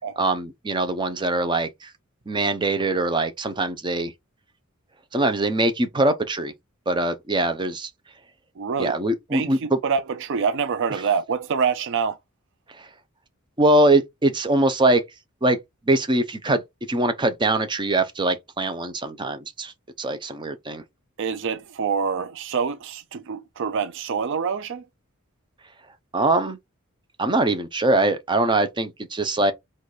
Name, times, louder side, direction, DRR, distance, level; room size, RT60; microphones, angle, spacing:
voice 1, 0.2-1.9 2.3-4.1 5.1-6.5 6.9-7.9 8.8-9.8 12.8-12.9 13.6-15.0 15.4-15.6 15.9-16.6 16.9-20.8 26.1-26.6 27.2-29.5, right 2 dB, 20° right, 0.7 m, -22 dB
voice 2, 8.6-9.0 9.3-12.2 21.2-24.8, right 6 dB, 60° right, 0.4 m, -26 dB
4.0 x 2.6 x 4.8 m
head